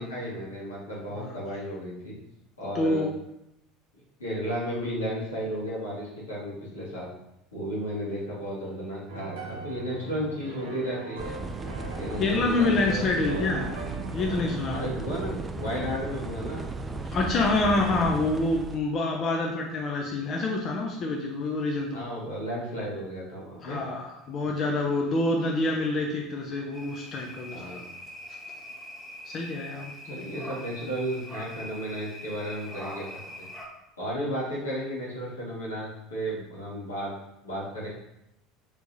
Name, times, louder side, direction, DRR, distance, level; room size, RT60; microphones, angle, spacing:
voice 1, 0.0-2.1 2.6-3.1 3.9-7.1 7.5-11.3 12.0-13.5 14.7-16.6 21.9-23.8 27.5-27.8 30.1-33.4 34.0-37.1 37.4-37.9, equal, 85° left, -7 dB, 1.5 m, -34 dB
voice 2, 2.7-3.1 12.2-13.7 14.1-14.9 17.1-22.0 23.6-27.8 29.3-30.5, left 2 dB, 40° left, 0 dB, 0.6 m, -27 dB
sound 1, 9.1-14.5, right 3 dB, 75° right, 1.2 m, -40 dB
sound 2, 11.2-18.8, right 3 dB, 20° right, 0.3 m, -35 dB
sound 3, 26.7-33.7, left 1 dB, 5° left, 1.5 m, -42 dB
4.4 x 3.5 x 2.7 m, 0.83 s
figure-of-eight pair, 70°, 0 cm